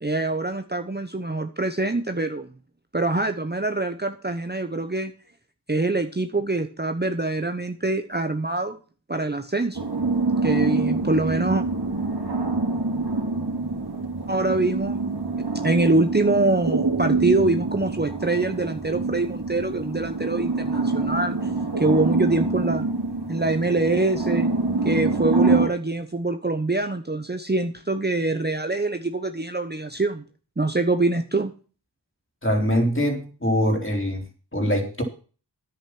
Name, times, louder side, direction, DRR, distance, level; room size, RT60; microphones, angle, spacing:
voice 1, 0.0-2.5 2.9-5.1 5.7-8.8 9.1-9.9 10.4-11.6 14.3-15.0 15.6-21.5 21.8-22.9 23.3-24.5 24.8-30.2 30.6-31.5, right 2 dB, 25° right, 7 dB, 1.0 m, -24 dB
sound 1, 9.7-25.7, right 3 dB, 60° right, 3.0 m, -25 dB
voice 2, 32.4-34.2 34.5-35.0, equal, 30° left, 2 dB, 4.0 m, -23 dB
10.0 x 8.7 x 6.1 m, 0.37 s
wide cardioid pair, 45°, 43 cm